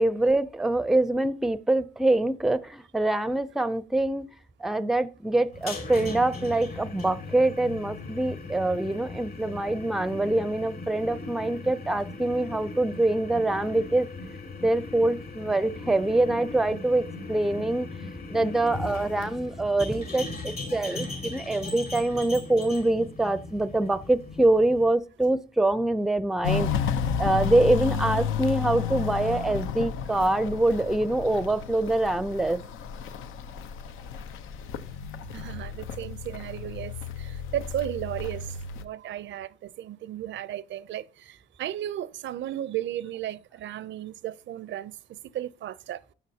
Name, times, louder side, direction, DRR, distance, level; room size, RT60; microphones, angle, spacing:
voice 1, 0.0-4.3 4.6-14.1 14.6-17.9 18.3-26.8 27.2-32.6, right 2 dB, ahead, 0.5 m, -25 dB
sound 1, 5.5-24.9, left 3 dB, 50° left, 4.3 m, -39 dB
Walk footsteps, 26.4-38.8, left 7 dB, 85° left, 0.8 m, -32 dB
voice 2, 35.3-46.0, right 12 dB, 70° right, 0.5 m, -35 dB
12.5 x 7.1 x 2.8 m
cardioid pair, 90°, 20 cm